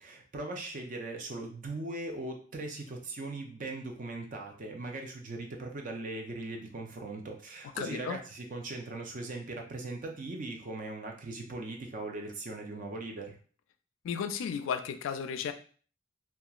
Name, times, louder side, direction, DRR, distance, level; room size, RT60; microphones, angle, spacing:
voice 1, 0.0-13.3, right 2 dB, 40° right, 2 dB, 0.5 m, -39 dB
voice 2, 7.8-8.2 14.0-15.5, left 7 dB, 85° left, 8 dB, 0.3 m, -34 dB
2.9 x 2.2 x 2.3 m, 0.42 s
head